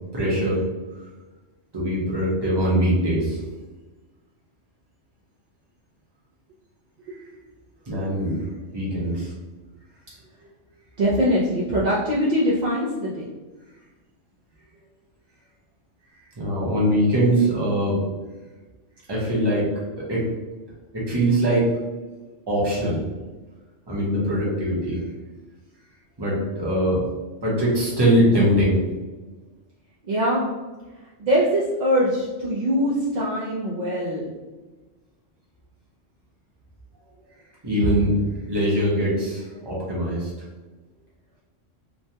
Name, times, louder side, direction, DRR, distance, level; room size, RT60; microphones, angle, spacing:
voice 1, 0.1-0.7 1.7-3.4 7.1-7.2 7.9-8.5 8.7-9.3 16.4-18.0 19.1-19.7 20.0-20.2 20.9-21.7 22.5-23.0 23.9-25.0 26.2-27.0 27.4-28.8 37.6-40.3, equal, 25° right, -6 dB, 0.7 m, -22 dB
voice 2, 11.0-13.3 30.1-30.4 31.2-34.3, equal, 60° right, -7 dB, 0.4 m, -22 dB
3.1 x 2.2 x 2.7 m, 1.2 s
omnidirectional pair, 1.3 m